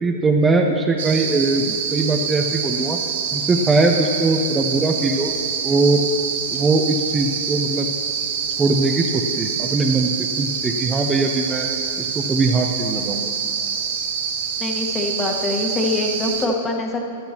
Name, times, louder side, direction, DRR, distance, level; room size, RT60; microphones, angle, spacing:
voice 1, 0.0-3.0 3.3-5.3 5.6-6.0 6.5-7.9 8.6-10.1 10.4-11.7 12.0-13.3, right 3 dB, 15° right, 2 dB, 0.7 m, -20 dB
sound 1, 1.0-16.5, right 6 dB, 70° right, 1.1 m, -26 dB
voice 2, 14.6-17.0, left 2 dB, 20° left, 1 dB, 1.5 m, -24 dB
14.0 x 11.5 x 3.0 m, 2.6 s
hypercardioid pair, 120°, 0 cm